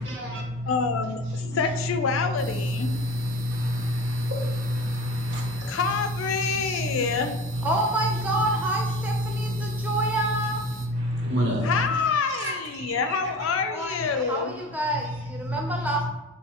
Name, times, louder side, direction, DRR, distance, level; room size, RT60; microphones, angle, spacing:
voice 1, 0.0-0.7 1.3-1.5 2.6-5.8 6.4-7.2 7.5-7.7 8.3-8.4 9.1-10.1 10.4-10.5 10.8-12.0 12.4-13.0 14.1-14.3 15.4-15.8, equal, 65° right, -1 dB, 0.8 m, -29 dB
voice 2, 0.7-3.0 5.7-7.4 11.6-14.6, left 5 dB, 80° left, 8 dB, 0.4 m, -27 dB
sound 1, 2.4-10.9, right 1 dB, 80° right, 1.1 m, -39 dB
voice 3, 7.6-10.6 13.7-16.1, right 2 dB, 10° right, 0 dB, 0.5 m, -28 dB
3.9 x 2.7 x 2.8 m, 1.0 s
head